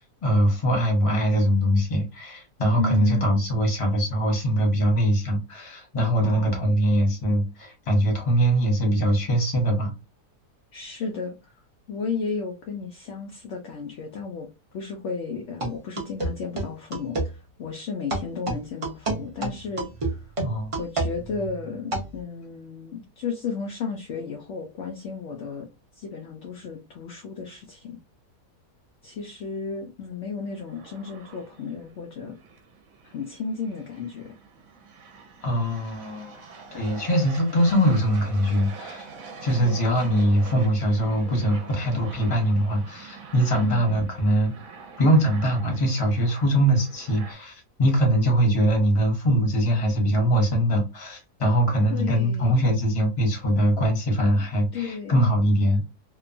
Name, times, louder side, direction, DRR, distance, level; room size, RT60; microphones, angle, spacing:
voice 1, 0.0-9.9 20.4-20.7 35.4-39.1 39.4-44.5 45.0-55.8, equal, 25° left, 0.7 m, -22 dB
voice 2, 2.8-3.5 6.2-6.7 10.7-11.5 11.9-20.3 20.8-25.7 26.0-28.0 29.0-32.4 33.0-34.3 39.5-40.0 43.6-44.1 51.9-52.7 54.7-55.3, left 5 dB, 75° left, 0.6 m, -33 dB
sound 1, 15.6-17.3 18.1-22.2, right 2 dB, 40° right, 0.4 m, -29 dB
sound 2, 30.4-47.3, right 5 dB, 65° right, 1.0 m, -45 dB
2.8 x 2.2 x 2.5 m
omnidirectional pair, 1.7 m